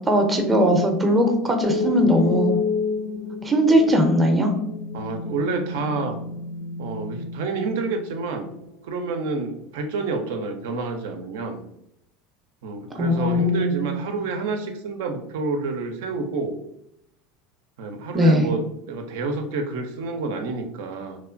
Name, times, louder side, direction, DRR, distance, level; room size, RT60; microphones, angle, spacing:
voice 1, 0.0-2.6 3.4-4.5 13.0-14.0 18.1-18.5, equal, 20° right, 4 dB, 0.5 m, -19 dB
sound 1, 1.6-8.6, left 5 dB, 65° left, 0.5 m, -30 dB
voice 2, 4.9-6.2 6.8-8.5 8.8-11.6 12.6-16.5 17.8-21.2, right 3 dB, 75° right, 5 dB, 0.4 m, -28 dB
3.0 x 2.1 x 2.5 m, 0.78 s
hypercardioid pair, 85°, 0 cm